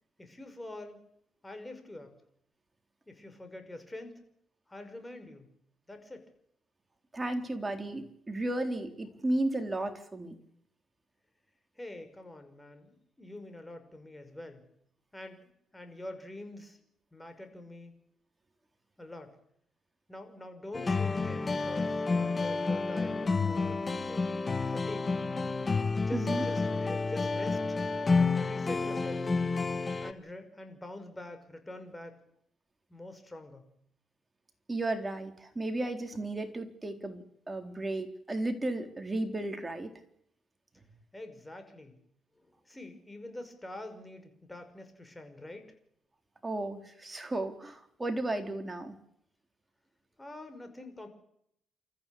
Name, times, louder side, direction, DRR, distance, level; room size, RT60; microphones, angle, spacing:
voice 1, 0.2-1.0 1.4-2.1 3.1-4.2 4.7-5.5 5.9-6.3 11.8-14.6 15.1-15.4 15.7-16.8 17.1-17.9 19.0-19.4 20.1-25.2 26.1-27.8 28.4-29.4 30.0-32.2 32.9-33.6 41.1-42.0 42.4-45.7 50.2-51.1, left 1 dB, 15° left, 7 dB, 5.7 m, -45 dB
voice 2, 7.1-10.4 26.1-26.5 34.7-39.9 46.4-49.0, right 2 dB, 20° right, 6 dB, 3.9 m, -34 dB
sound 1, 20.7-30.1, left 4 dB, 30° left, 1.9 m, -30 dB
28.5 x 14.5 x 8.7 m, 0.74 s
cardioid pair, 90°, 0 cm